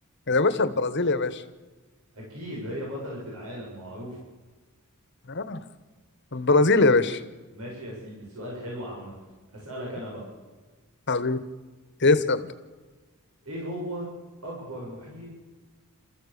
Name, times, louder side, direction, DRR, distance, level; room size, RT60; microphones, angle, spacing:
voice 1, 0.3-1.4 5.3-5.6 6.3-7.2 11.1-11.4 12.0-12.4, left 3 dB, 55° left, 12 dB, 1.4 m, -22 dB
voice 2, 2.1-4.2 7.5-9.1 9.5-10.2 13.5-14.1 14.4-15.3, equal, 75° right, -3 dB, 7.0 m, -37 dB
28.0 x 14.5 x 7.0 m, 1.3 s
head